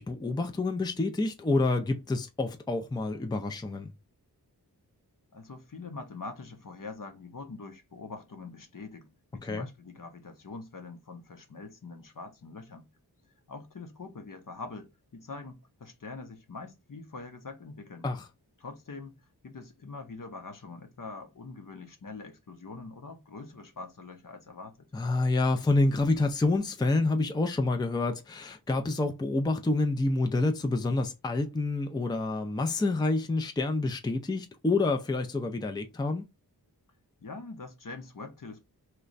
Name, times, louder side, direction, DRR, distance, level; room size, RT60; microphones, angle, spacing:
voice 1, 0.0-3.9 9.4-9.7 18.0-18.2 24.9-36.3, left 2 dB, 10° left, 0.5 m, -28 dB
voice 2, 5.3-9.1 9.3-12.9 13.5-18.1 18.6-19.1 19.4-24.8 37.2-38.6, left 3 dB, 55° left, 0.8 m, -44 dB
3.2 x 2.2 x 3.8 m
wide cardioid pair, 60°, 39 cm